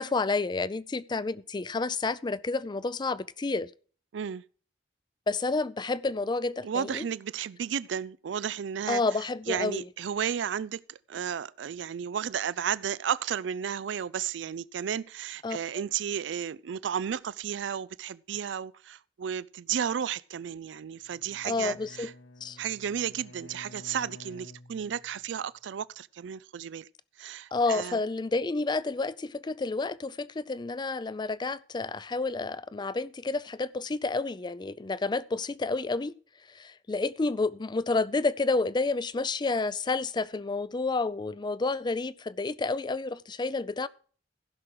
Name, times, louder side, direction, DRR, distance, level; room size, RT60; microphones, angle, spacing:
voice 1, 0.0-3.7 5.3-7.0 8.9-9.9 15.4-15.8 21.4-22.1 22.4-22.6 27.5-36.1 36.5-43.9, left 3 dB, 25° left, 0.4 m, -30 dB
voice 2, 4.1-4.4 6.6-9.0 9.5-22.1 22.6-26.9 27.2-28.0, right 8 dB, 90° right, 0.4 m, -33 dB
Bowed string instrument, 21.0-25.4, left 2 dB, 80° left, 1.0 m, -51 dB
15.5 x 6.1 x 4.7 m
head